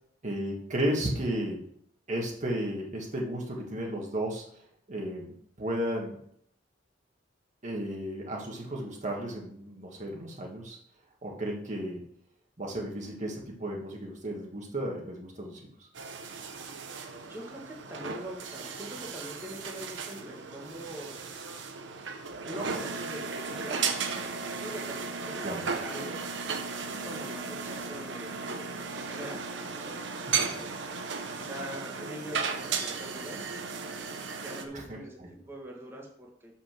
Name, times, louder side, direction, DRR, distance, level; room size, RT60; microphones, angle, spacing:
voice 1, 0.2-1.6 2.1-4.4 4.9-6.2 7.6-10.8 11.2-12.0 12.6-15.9 25.4-25.7 30.3-30.6 34.7-35.3, right 1 dB, 40° right, -1 dB, 1.6 m, -34 dB
sound 1, 15.9-34.6, right 5 dB, 80° right, 1.0 m, -35 dB
voice 2, 17.3-21.1 22.4-26.2 26.9-30.7 31.3-36.6, right 1 dB, 15° right, -2 dB, 1.7 m, -43 dB
6.9 x 5.8 x 5.9 m, 0.67 s
head